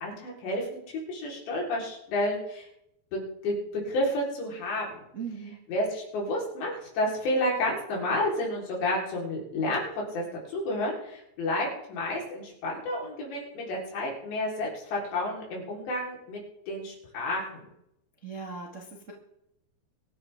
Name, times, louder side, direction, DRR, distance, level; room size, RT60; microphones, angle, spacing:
voice 1, 0.0-2.7 3.1-5.0 5.7-9.8 10.1-16.4 16.7-17.7, left 1 dB, 75° left, -3 dB, 6.2 m, -30 dB
voice 2, 5.1-5.6 18.2-19.1, right 5 dB, 80° right, -2 dB, 0.6 m, -39 dB
23.5 x 11.5 x 3.6 m, 0.80 s
omnidirectional pair, 5.1 m